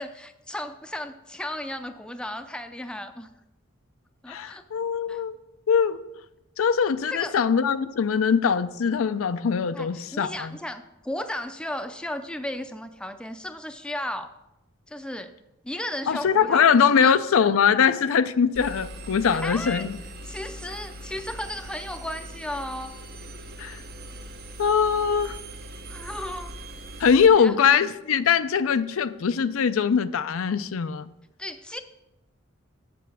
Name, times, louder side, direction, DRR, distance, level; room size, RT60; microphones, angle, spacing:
voice 1, 0.0-3.3 4.2-4.6 5.1-5.2 7.1-7.4 9.7-14.3 14.9-15.3 15.6-17.1 19.3-19.9 20.2-22.9 25.9-26.5 27.3-27.7 31.4-31.8, left 1 dB, 5° left, 0.4 m, -35 dB
voice 2, 4.3-5.3 5.7-6.0 6.6-10.6 16.1-20.0 23.6-23.8 24.6-25.4 27.0-31.1, left 7 dB, 80° left, 0.4 m, -22 dB
Engine, 18.5-27.3, right 1 dB, 50° right, 0.7 m, -40 dB
7.2 x 7.0 x 6.1 m
head